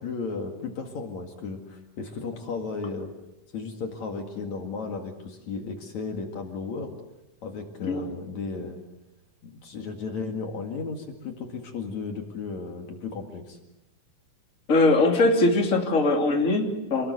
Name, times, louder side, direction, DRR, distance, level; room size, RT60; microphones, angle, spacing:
voice 1, 0.0-3.1 3.5-6.9 7.4-8.8 9.4-13.6, left 4 dB, 60° left, 3 dB, 3.3 m, -34 dB
voice 2, 14.7-17.1, left 2 dB, 25° left, 2 dB, 3.0 m, -21 dB
28.5 x 20.5 x 8.0 m, 0.94 s
omnidirectional pair, 3.8 m